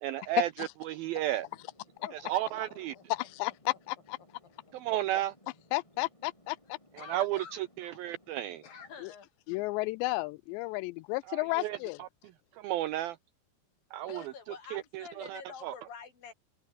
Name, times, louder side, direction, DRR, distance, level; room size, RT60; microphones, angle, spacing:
voice 1, 0.0-1.5 2.1-2.9 4.7-5.4 6.9-8.6 11.3-12.1 12.5-13.2 13.9-15.8, right 14 dB, 80° right, 2.2 m, -34 dB
sound 1, 1.0-9.0, left 1 dB, 5° left, 5.1 m, -63 dB
voice 2, 2.0-3.0 7.0-7.6 8.6-9.3 14.0-16.3, left 6 dB, 55° left, 5.4 m, -48 dB
voice 3, 3.1-4.2 5.7-6.8 9.0-9.1 9.5-12.0, left 22 dB, 85° left, 2.7 m, -33 dB
open air
omnidirectional pair, 5.0 m